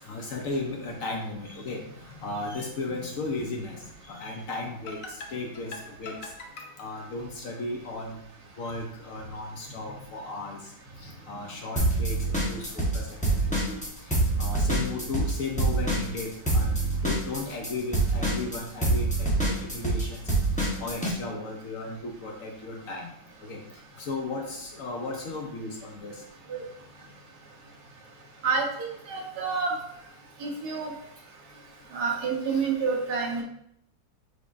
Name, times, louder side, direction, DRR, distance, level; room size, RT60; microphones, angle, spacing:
voice 1, 0.0-8.2 8.6-10.7 11.0-14.1 14.4-20.3 20.6-23.1 23.4-23.6 24.0-26.2 32.4-32.7, left 3 dB, 65° left, 1 dB, 0.9 m, -35 dB
sound 1, 11.8-13.0 13.2-21.1, right 2 dB, 5° left, 0.7 m, -25 dB
voice 2, 28.4-29.7 30.4-30.9 31.9-33.4, right 5 dB, 70° right, 0 dB, 1.4 m, -28 dB
6.3 x 3.4 x 2.5 m, 0.75 s
omnidirectional pair, 1.8 m